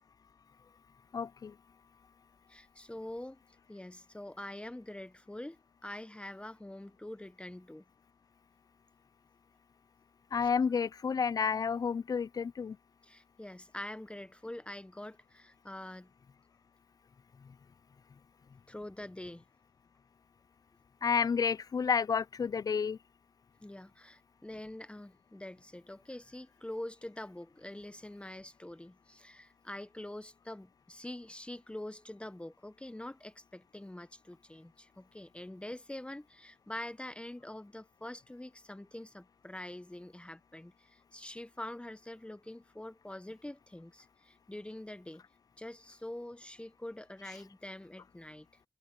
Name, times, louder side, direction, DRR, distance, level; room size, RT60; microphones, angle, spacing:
voice 1, 1.1-1.5 10.3-12.8 21.0-23.0, left 6 dB, 60° left, 0.3 m, -30 dB
voice 2, 2.5-3.4 3.7-7.8 10.4-10.6 13.0-16.1 18.7-19.4 23.6-45.2 45.6-48.5, left 1 dB, 15° left, 0.8 m, -45 dB
wide cardioid pair, 75°, 7 cm